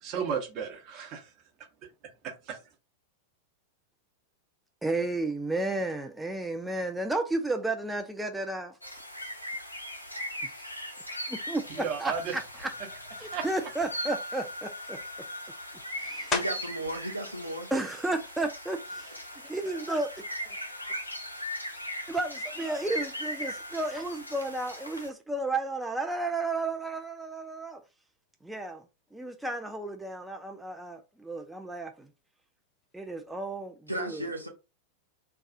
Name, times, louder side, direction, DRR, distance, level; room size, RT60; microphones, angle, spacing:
voice 1, 0.0-1.3 2.4-2.6 11.8-12.3 13.2-13.5, right 7 dB, 40° right, 0.8 m, -33 dB
voice 2, 4.8-8.7 10.4-10.5 11.3-12.7 13.2-15.0 16.0-16.3 17.7-20.1 20.5-20.6 22.1-27.8 28.4-28.8 29.1-32.1 32.9-34.3, right 2 dB, 5° right, 0.4 m, -33 dB
sound 1, 8.8-25.1, equal, 85° left, 0.5 m, -39 dB
sound 2, 16.3-16.9 17.5-21.9 22.4-27.6 27.9-33.5, left 4 dB, 25° left, 0.7 m, -44 dB
voice 3, 16.3-17.7 33.9-34.5, right 1 dB, 90° right, 0.6 m, -34 dB
2.3 x 2.3 x 3.8 m
figure-of-eight pair, 90°, 0 cm